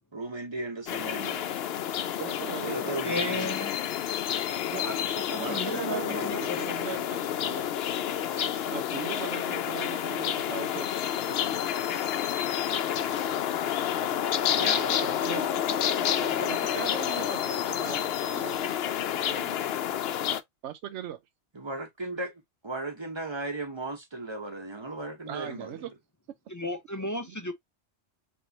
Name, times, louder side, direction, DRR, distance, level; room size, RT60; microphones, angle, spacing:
voice 1, 0.1-1.5 2.5-3.5 14.5-15.0 16.3-16.6 21.5-22.3 22.6-25.7, right 2 dB, 25° right, 1.0 m, -36 dB
sound 1, 0.9-20.4, left 10 dB, 70° left, 0.7 m, -29 dB
voice 2, 2.2-3.1 4.7-4.9 5.2-7.8 8.7-11.8 15.0-18.7 19.2-19.6 20.6-21.2 25.3-25.9 27.3-27.4, right 11 dB, 90° right, 0.9 m, -40 dB
voice 3, 3.0-3.8 4.8-6.7 26.5-27.5, left 1 dB, 25° left, 0.4 m, -34 dB
4.6 x 3.0 x 2.7 m
omnidirectional pair, 1.1 m